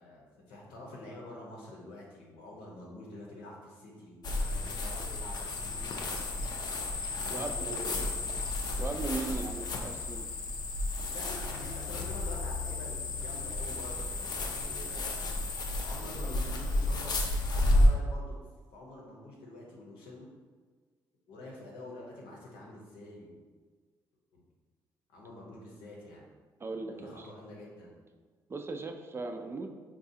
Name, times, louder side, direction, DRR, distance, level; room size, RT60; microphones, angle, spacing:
voice 1, 0.0-6.2 7.1-8.3 11.1-15.4 15.8-18.4 18.7-20.3 21.3-23.4 24.3-24.4 25.1-26.3 26.9-27.9, left 2 dB, 85° left, -3 dB, 0.8 m, -47 dB
sound 1, 4.2-17.9, left 2 dB, 55° left, 0.5 m, -32 dB
voice 2, 7.3-8.1 8.8-10.3 26.6-27.3 28.5-29.7, right 3 dB, 30° right, 5 dB, 0.4 m, -38 dB
3.9 x 2.3 x 2.7 m, 1.4 s
supercardioid pair, 60°, 8 cm